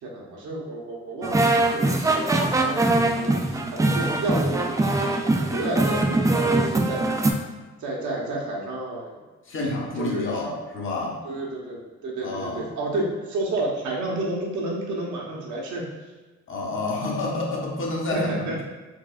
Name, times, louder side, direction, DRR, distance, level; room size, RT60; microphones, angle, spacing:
voice 1, 0.0-7.4 7.8-9.2 9.6-10.5 11.2-15.8 18.1-18.6, right 2 dB, 75° right, -3 dB, 0.9 m, -31 dB
sound 1, 1.2-7.3, right 2 dB, 10° right, 0.3 m, -22 dB
voice 2, 9.4-11.2 12.2-12.7 16.5-18.3, left 2 dB, 45° left, -2 dB, 0.8 m, -29 dB
4.5 x 2.3 x 2.4 m, 1.2 s
cardioid pair, 90°, 30 cm